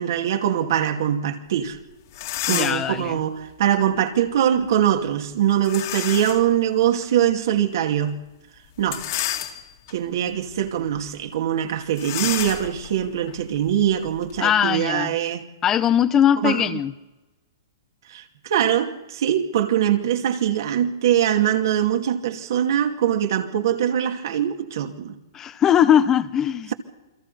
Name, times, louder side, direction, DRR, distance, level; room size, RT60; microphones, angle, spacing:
voice 1, 0.0-1.8 2.5-8.2 8.8-9.0 9.9-15.5 16.4-16.8 18.1-25.1, right 10 dB, 60° right, 2.6 m, -22 dB
sound 1, 1.7-1.8 2.1-3.0 5.6-6.5 7.0-7.1 8.8-9.9 10.5-10.7 10.9-11.1 12.0-14.4, left 13 dB, 55° left, 2.6 m, -30 dB
voice 2, 2.5-3.2 14.4-15.1 15.6-16.9 25.3-26.7, left 9 dB, 20° left, 0.7 m, -20 dB
29.0 x 23.0 x 4.2 m
hypercardioid pair, 150°, 2 cm